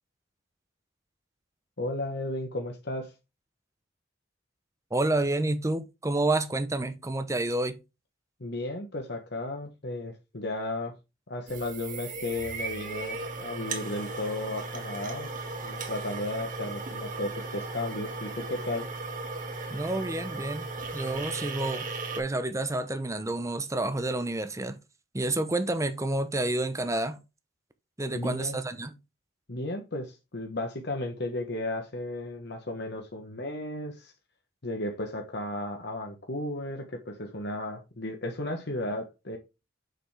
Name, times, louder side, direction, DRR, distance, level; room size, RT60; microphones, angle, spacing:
voice 1, 1.8-3.1 8.4-10.9 11.3-15.3 15.6-18.9 28.1-28.6 29.5-34.1 34.6-39.4, left 1 dB, 60° left, 1.3 m, -34 dB
voice 2, 4.9-7.8 19.7-20.7 20.9-21.9 22.2-24.8 25.1-27.2 28.0-28.9, right 2 dB, 15° right, 0.8 m, -29 dB
sound 1, 11.5-22.2, right 3 dB, 45° right, 1.9 m, -36 dB
6.8 x 6.5 x 3.4 m
head